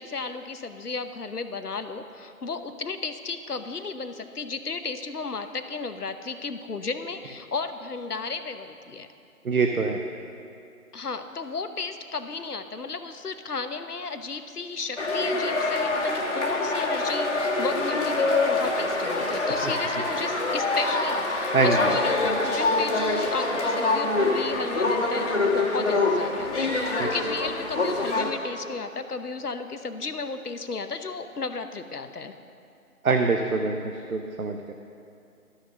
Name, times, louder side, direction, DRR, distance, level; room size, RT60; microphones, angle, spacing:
voice 1, 0.0-9.1 10.9-32.3, left 4 dB, 90° left, 9 dB, 0.9 m, -34 dB
voice 2, 9.4-10.0 21.5-21.9 27.0-27.1 33.0-34.7, right 4 dB, 65° right, 4 dB, 0.9 m, -24 dB
sound 1, 15.0-28.3, left 2 dB, 50° left, 1.7 m, -25 dB
12.5 x 6.5 x 6.9 m, 2.6 s
figure-of-eight pair, 160°, 45 cm